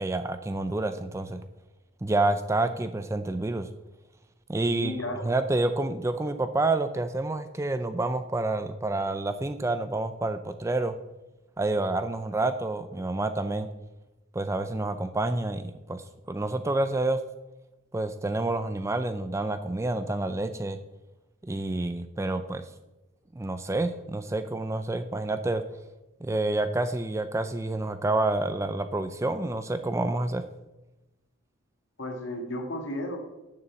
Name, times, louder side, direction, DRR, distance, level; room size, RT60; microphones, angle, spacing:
voice 1, 0.0-1.4 2.0-3.7 4.5-5.0 5.2-10.9 11.6-13.7 14.3-17.2 17.9-20.8 21.5-22.6 23.3-25.6 26.2-30.4, right 2 dB, 15° right, 10 dB, 0.3 m, -28 dB
voice 2, 4.7-5.2 32.0-33.2, left 1 dB, 60° left, 3 dB, 1.8 m, -33 dB
7.0 x 6.8 x 7.0 m, 1.0 s
head